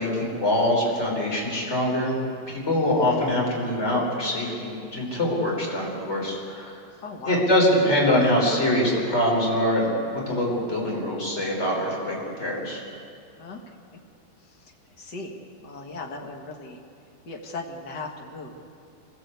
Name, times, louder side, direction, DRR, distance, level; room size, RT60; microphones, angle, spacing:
voice 1, 0.0-2.2 2.5-6.7 7.3-12.8, left 1 dB, 15° left, -3 dB, 5.3 m, -24 dB
voice 2, 7.0-7.4 13.4-13.6 14.6-14.7 15.0-16.8 17.2-18.6, left 3 dB, 50° left, 1 dB, 1.2 m, -37 dB
25.5 x 16.0 x 8.3 m, 2.4 s
omnidirectional pair, 4.9 m